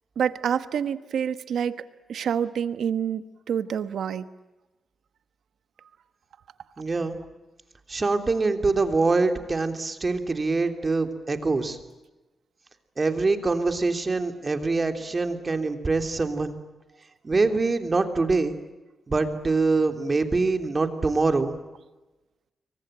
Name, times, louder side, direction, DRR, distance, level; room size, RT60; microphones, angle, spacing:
voice 1, 0.2-1.8 2.1-4.3, right 8 dB, 85° right, 12 dB, 1.3 m, -27 dB
voice 2, 6.8-7.2 7.9-11.8 13.0-16.5 17.2-18.6 19.1-21.5, right 3 dB, 35° right, 6 dB, 3.1 m, -24 dB
27.0 x 24.0 x 8.9 m, 1.1 s
cardioid pair, 90°, 0 cm